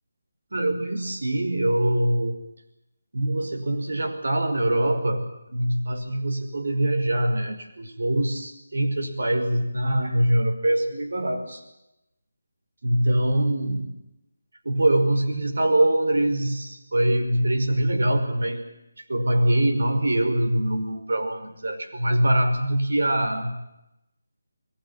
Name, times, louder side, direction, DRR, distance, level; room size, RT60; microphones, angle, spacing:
voice 1, 0.5-2.4 3.1-11.6 12.8-14.0 14.7-18.6 19.1-23.6, right 1 dB, 70° right, 5 dB, 5.4 m, -23 dB
22.5 x 20.0 x 9.0 m, 0.88 s
figure-of-eight pair, 165°, 0 cm